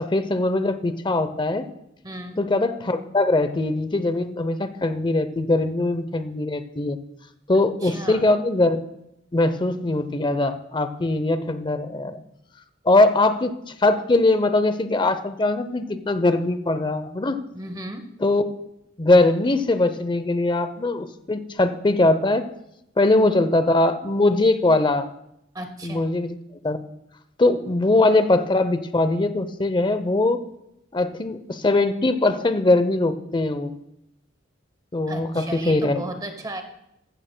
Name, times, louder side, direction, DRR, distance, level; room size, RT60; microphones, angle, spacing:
voice 1, 0.0-1.7 2.4-7.0 7.5-8.8 9.3-12.2 12.9-17.4 18.2-18.4 19.0-22.5 23.0-25.1 25.8-26.4 26.6-26.8 27.4-30.4 30.9-33.7 34.9-36.0, left 2 dB, 25° left, 11 dB, 0.6 m, -21 dB
voice 2, 2.0-2.4 7.8-8.3 17.5-18.0 25.5-26.0 35.1-36.6, right 1 dB, 20° right, 6 dB, 0.9 m, -35 dB
15.0 x 13.5 x 2.2 m, 0.82 s
head